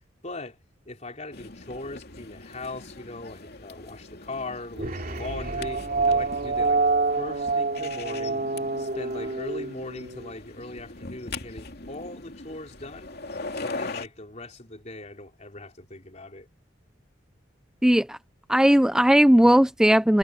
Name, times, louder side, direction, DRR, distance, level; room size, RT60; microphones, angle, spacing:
voice 1, 0.2-0.6 0.9-6.8 7.2-8.5 8.8-13.1 13.5-16.5, left 2 dB, 40° left, 4.1 m, -39 dB
sound 1, 1.3-14.1, left 3 dB, 55° left, 2.8 m, -41 dB
sound 2, 4.8-10.3, right 3 dB, 50° right, 3.1 m, -27 dB
voice 2, 17.8-18.2 18.5-20.2, equal, 5° right, 0.4 m, -18 dB
head